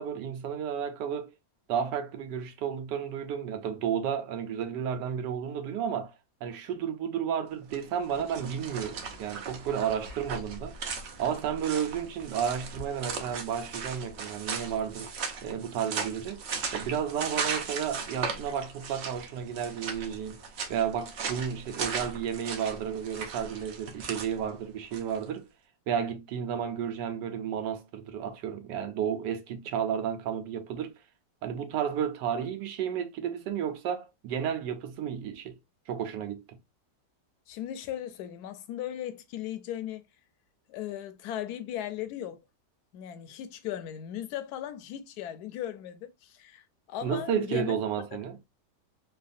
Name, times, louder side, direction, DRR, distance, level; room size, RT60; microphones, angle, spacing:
voice 1, 0.0-1.3 1.7-6.1 6.4-10.8 11.2-15.1 15.4-16.4 16.7-20.4 20.7-25.4 25.9-30.9 31.4-35.6 35.9-36.4 47.0-48.4, right 8 dB, 85° right, 1.2 m, -32 dB
sound 1, 7.6-25.2, right 5 dB, 60° right, 0.7 m, -38 dB
voice 2, 37.5-40.0 40.7-42.4 42.9-46.6 46.9-47.8 48.1-48.2, left 11 dB, 75° left, 1.0 m, -37 dB
3.2 x 2.2 x 2.5 m
omnidirectional pair, 1.8 m